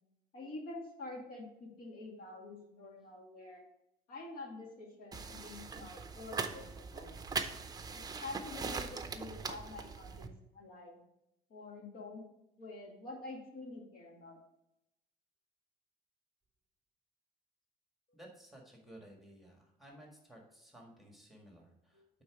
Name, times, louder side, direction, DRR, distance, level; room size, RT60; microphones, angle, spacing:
voice 1, 0.3-3.6 4.1-7.2 7.9-10.3 10.5-11.0 11.5-12.2 12.6-14.4 21.9-22.1, left 2 dB, 60° left, 0 dB, 2.1 m, -47 dB
sound 1, 5.1-10.3, right 4 dB, 20° right, 0.6 m, -41 dB
voice 2, 18.1-22.0, right 1 dB, ahead, 0 dB, 1.7 m, -56 dB
8.7 x 3.9 x 4.8 m, 0.85 s
cardioid pair, 110°, 17 cm